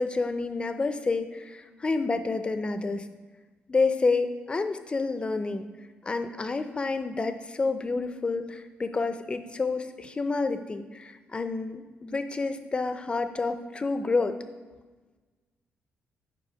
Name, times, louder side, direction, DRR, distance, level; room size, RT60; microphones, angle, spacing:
voice 1, 0.0-3.0 3.7-5.6 6.0-14.3, left 3 dB, 25° left, 9 dB, 0.6 m, -29 dB
9.9 x 5.2 x 5.1 m, 1.3 s
cardioid pair, 100°, 4 cm